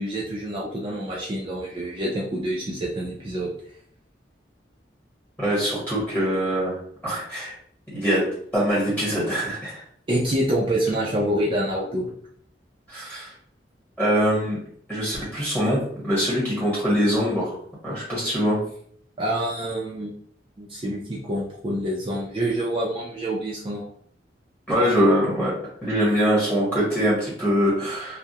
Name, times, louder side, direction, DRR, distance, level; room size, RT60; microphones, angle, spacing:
voice 1, 0.0-3.5 10.1-12.1 19.2-20.1 20.6-23.8, right 1 dB, 30° right, -4 dB, 0.3 m, -27 dB
voice 2, 5.4-6.8 7.0-7.5 7.9-9.8 12.9-13.3 14.0-14.6 14.9-17.6 17.8-18.6 24.7-25.5 25.8-28.2, equal, 10° left, -8 dB, 1.1 m, -23 dB
2.2 x 2.0 x 2.7 m, 0.62 s
head